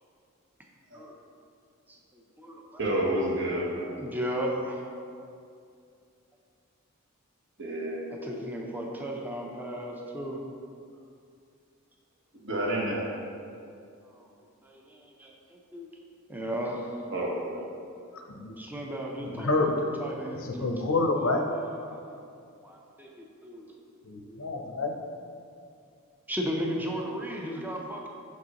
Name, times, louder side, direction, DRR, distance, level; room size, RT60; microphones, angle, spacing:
voice 1, 1.9-2.8 4.0-4.9 8.1-10.4 14.0-14.3 14.6-15.9 16.3-16.9 18.6-19.7 20.0-20.7 21.8-22.2 22.6-23.8 24.3-24.5 26.3-28.1, equal, 10° right, -1 dB, 0.5 m, -35 dB
voice 2, 2.8-3.9 7.6-8.3 12.4-13.1 17.1-17.6, right 1 dB, 55° right, -3 dB, 1.1 m, -29 dB
voice 3, 18.1-18.6 19.2-19.7 20.4-21.5 24.0-25.0, left 3 dB, 65° left, 3 dB, 0.6 m, -28 dB
6.3 x 5.6 x 2.9 m, 2.4 s
head